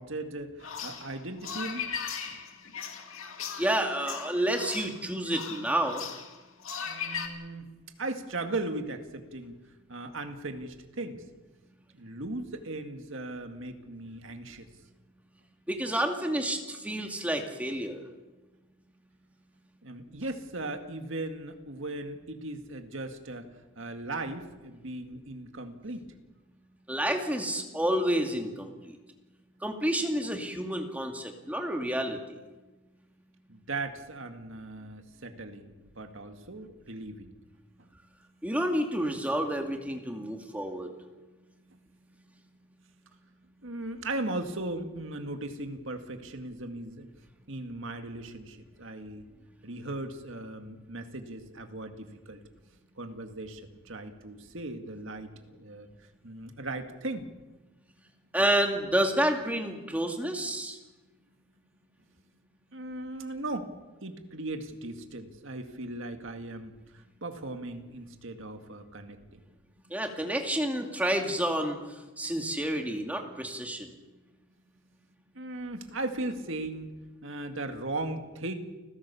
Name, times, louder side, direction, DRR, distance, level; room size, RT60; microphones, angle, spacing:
voice 1, 0.0-1.9 6.8-7.7 8.0-9.6 9.9-11.2 11.9-14.7 19.8-23.5 23.8-26.1 33.5-37.3 37.8-37.9 43.6-47.1 47.5-49.3 49.6-52.4 53.0-55.9 56.2-57.3 62.7-63.7 64.0-69.4 75.3-76.9 77.2-78.5, right 2 dB, 60° right, 6 dB, 2.1 m, -38 dB
sound 1, 0.6-7.3, left 7 dB, 65° left, 2.4 m, -38 dB
voice 2, 3.6-6.0 15.7-18.0 26.9-29.0 29.6-32.2 38.4-40.9 58.3-60.8 69.9-71.8 72.2-73.9, right 1 dB, 5° right, 3 dB, 2.3 m, -29 dB
29.5 x 16.0 x 7.1 m, 1.2 s
head